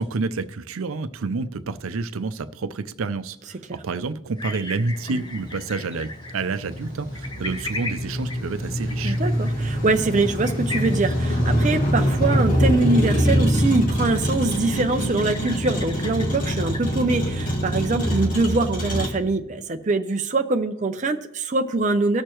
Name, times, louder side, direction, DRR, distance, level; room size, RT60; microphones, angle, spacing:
voice 1, 0.0-9.2, right 3 dB, 85° right, 12 dB, 0.5 m, -29 dB
sound 1, 4.4-17.0, left 2 dB, 20° left, 0.9 m, -39 dB
Motor vehicle (road), 5.0-19.1, equal, 40° left, 1.8 m, -24 dB
voice 2, 9.0-22.2, right 3 dB, 35° right, 6 dB, 0.5 m, -23 dB
19.5 x 6.6 x 3.0 m, 0.90 s
head